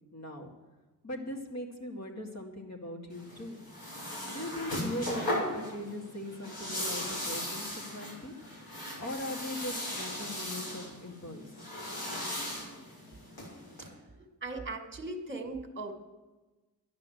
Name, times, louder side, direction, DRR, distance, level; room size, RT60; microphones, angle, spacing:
voice 1, 0.1-0.5 1.0-3.6 4.3-8.3 9.0-11.4, left 1 dB, 45° left, 2 dB, 2.5 m, -40 dB
sound 1, 3.1-13.9, left 1 dB, 75° left, 6.4 m, -38 dB
voice 2, 14.2-15.9, right 2 dB, 30° right, 5 dB, 1.9 m, -39 dB
12.5 x 10.5 x 8.0 m, 1.2 s
wide cardioid pair, 105°, 37 cm